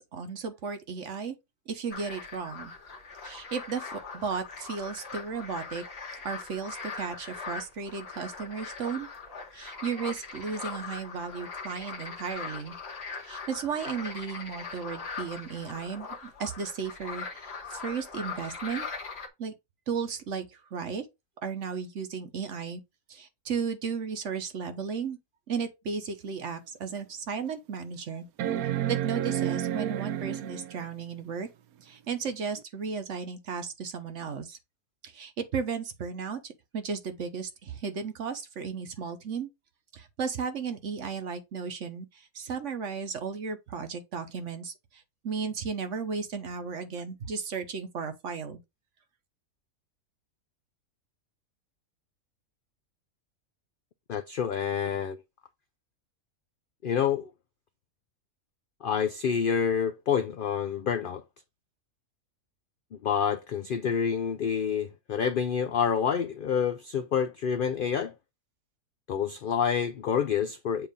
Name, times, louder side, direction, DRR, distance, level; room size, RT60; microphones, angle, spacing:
voice 1, 0.0-1.3 1.7-2.7 3.2-5.8 6.2-9.1 9.5-12.8 13.2-18.9 19.4-19.5 19.9-21.1 21.4-22.8 23.1-25.2 25.5-28.3 28.9-31.5 31.8-34.6 35.0-39.5 39.9-44.7 45.2-48.6, right 6 dB, 60° right, 1.3 m, -35 dB
sound 1, 1.9-19.3, left 5 dB, 50° left, 1.4 m, -41 dB
sound 2, 26.2-26.3 26.9-27.0 28.4-30.9 32.6-32.7, right 11 dB, 90° right, 1.1 m, -30 dB
voice 2, 54.1-55.2 56.8-57.3 58.8-61.2 62.9-68.1 69.1-70.9, left 7 dB, 85° left, 0.4 m, -28 dB
7.4 x 2.7 x 5.0 m
omnidirectional pair, 1.5 m